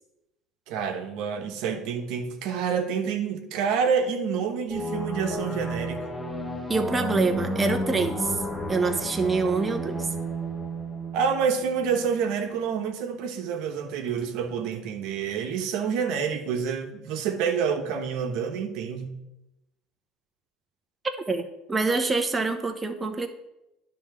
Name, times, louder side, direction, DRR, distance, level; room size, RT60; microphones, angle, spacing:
voice 1, 0.7-6.0 9.0-9.1 11.1-19.1, right 6 dB, 70° right, 4 dB, 1.1 m, -28 dB
sound 1, 4.7-12.1, right 1 dB, 5° left, 1.2 m, -32 dB
voice 2, 6.7-8.4 8.7-10.1 21.0-21.4 21.7-23.3, right 4 dB, 20° right, 4 dB, 1.0 m, -25 dB
10.0 x 3.8 x 6.8 m, 0.92 s
supercardioid pair, 90°, 0 cm